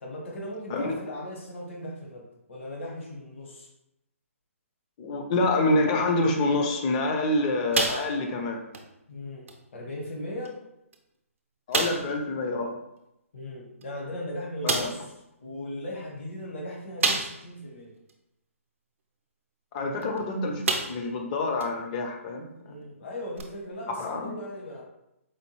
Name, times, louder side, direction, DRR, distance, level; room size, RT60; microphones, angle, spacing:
voice 1, 0.0-3.7 9.1-10.6 13.3-15.1 15.4-17.9 22.6-24.8, left 1 dB, 55° left, -1 dB, 1.1 m, -38 dB
voice 2, 5.0-8.6 11.7-12.8 14.6-14.9 19.7-22.5 24.0-24.3, left 2 dB, 30° left, 3 dB, 0.5 m, -27 dB
sound 1, 7.7-8.4 8.7-8.9 9.5-9.6 10.4-10.5 10.9-11.0 11.7-12.2 13.8-13.9 14.7-15.1 17.0-17.6 18.1-18.2 20.0-20.2 20.6-21.2 21.6-21.7 23.4-23.5, right 4 dB, 60° right, 0.6 m, -28 dB
4.3 x 2.3 x 3.1 m, 0.85 s
figure-of-eight pair, 135°, 8 cm